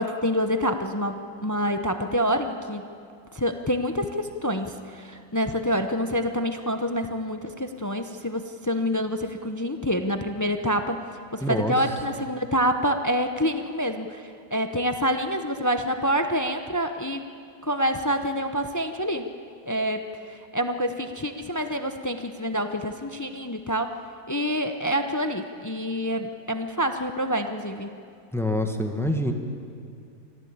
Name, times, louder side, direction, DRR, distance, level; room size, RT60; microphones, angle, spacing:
voice 1, 0.0-2.9 3.3-11.0 11.3-17.2 17.6-19.3 19.7-20.0 20.3-24.0 24.3-27.9, equal, 30° left, 7 dB, 0.3 m, -27 dB
voice 2, 11.4-11.7 28.3-29.3, left 1 dB, ahead, 4 dB, 1.4 m, -25 dB
24.0 x 15.0 x 8.7 m, 2.4 s
omnidirectional pair, 1.8 m